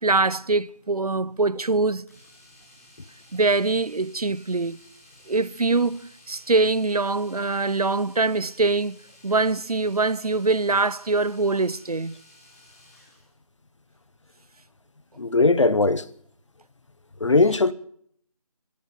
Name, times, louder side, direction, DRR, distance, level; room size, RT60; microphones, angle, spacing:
voice 1, 0.0-2.0 3.3-4.8 5.3-9.0 9.2-12.2, right 3 dB, 85° right, 1.0 m, -23 dB
Domestic sounds home sounds, 2.1-13.3 15.4-15.6 15.9-16.0, left 1 dB, 25° left, 6.6 m, -54 dB
voice 2, 15.2-16.1 17.2-17.7, left 3 dB, 55° left, 1.1 m, -19 dB
25.0 x 12.5 x 8.9 m
figure-of-eight pair, 170°, 19 cm